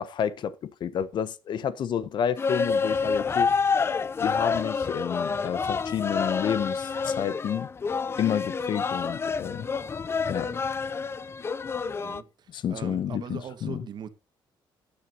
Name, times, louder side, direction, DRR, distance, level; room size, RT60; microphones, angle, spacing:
voice 1, 0.0-3.5 4.2-7.7 8.2-9.7 10.3-10.5 12.0-12.1 12.5-13.8, left 9 dB, 60° left, 1.0 m, -30 dB
sound 1, 2.4-12.2, left 5 dB, 30° left, 0.5 m, -28 dB
voice 2, 11.8-14.1, right 8 dB, 55° right, 1.6 m, -41 dB
16.0 x 10.0 x 2.8 m
cardioid pair, 125°, 9 cm